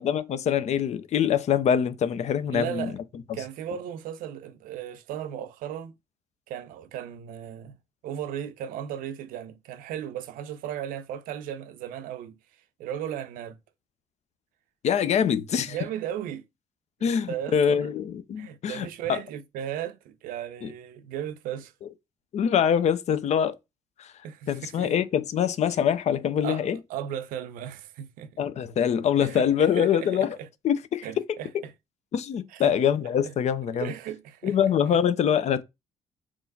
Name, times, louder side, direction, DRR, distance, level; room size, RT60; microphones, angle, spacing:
voice 1, 0.0-2.9 3.3-3.4 14.8-15.8 17.0-19.2 20.6-20.7 22.3-23.6 24.0-24.1 24.5-26.8 28.4-30.3 30.6-31.6 32.1-33.9 34.4-35.6, left 8 dB, 45° left, 0.5 m, -24 dB
voice 2, 2.5-3.0 3.3-5.9 6.5-7.8 8.0-12.4 12.8-13.6 15.7-16.5 17.3-17.9 18.4-21.7 24.2-24.9 26.4-26.6 26.9-28.3 29.2-30.5 31.0-31.7 32.5-32.7 33.2-33.3 33.7-34.6, right 10 dB, 60° right, 0.5 m, -36 dB
3.6 x 3.1 x 2.7 m
figure-of-eight pair, 45°, 16 cm